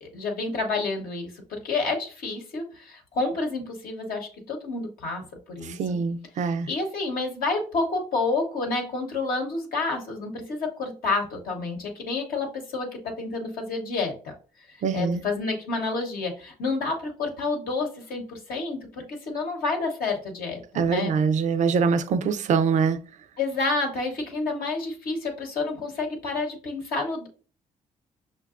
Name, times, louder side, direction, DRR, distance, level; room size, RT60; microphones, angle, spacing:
voice 1, 0.0-5.7 6.4-14.3 14.7-21.1 23.4-27.3, left 3 dB, 75° left, 0.9 m, -29 dB
voice 2, 5.8-6.7 14.8-15.2 20.8-23.0, right 5 dB, 55° right, 0.4 m, -23 dB
5.6 x 2.2 x 2.4 m
supercardioid pair, 60°, 15 cm